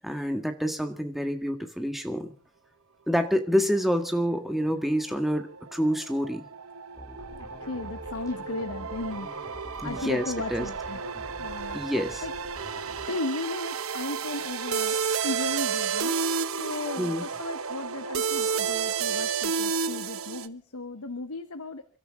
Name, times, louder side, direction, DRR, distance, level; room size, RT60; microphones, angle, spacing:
voice 1, 0.0-2.3 3.1-6.5 9.8-10.7 11.7-12.2 17.0-17.2, equal, ahead, 6 dB, 1.8 m, -27 dB
sound 1, 4.2-20.5, right 6 dB, 75° right, 1.0 m, -32 dB
sound 2, 6.9-13.1, equal, 15° left, 5.9 m, -46 dB
voice 2, 7.3-11.0 11.4-11.8 12.2-12.3 13.1-15.0 15.2-21.8, left 2 dB, 85° left, 10 dB, 1.2 m, -36 dB
30.0 x 13.0 x 3.7 m, 0.35 s
head